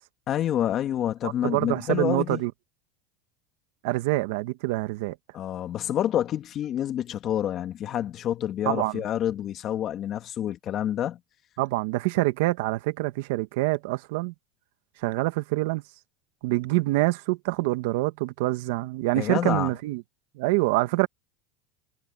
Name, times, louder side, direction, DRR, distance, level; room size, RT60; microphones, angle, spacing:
voice 1, 0.3-2.4 5.3-11.2 19.2-19.7, left 11 dB, 35° left, 2.1 m, -28 dB
voice 2, 1.2-2.5 3.8-5.2 8.6-9.0 11.6-14.3 15.0-15.8 16.4-20.0 20.3-21.1, right 20 dB, 75° right, 1.5 m, -26 dB
supercardioid pair, 140°, 0 cm